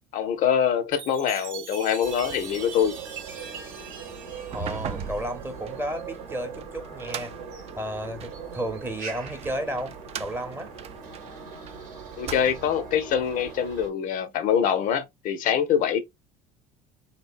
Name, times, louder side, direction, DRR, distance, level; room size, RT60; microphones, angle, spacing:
voice 1, 0.1-3.0 12.2-16.0, left 8 dB, 55° left, 0.5 m, -24 dB
Chime, 0.9-5.5, right 6 dB, 85° right, 0.6 m, -42 dB
sound 1, 2.0-13.9, right 6 dB, 60° right, 0.8 m, -41 dB
sound 2, 4.4-8.4 9.0-11.7 12.1-12.9, right 7 dB, 40° right, 0.3 m, -39 dB
voice 2, 4.5-7.3 7.8-10.7, right 1 dB, 15° right, 0.7 m, -33 dB
2.8 x 2.1 x 2.3 m
hypercardioid pair, 75°, 16 cm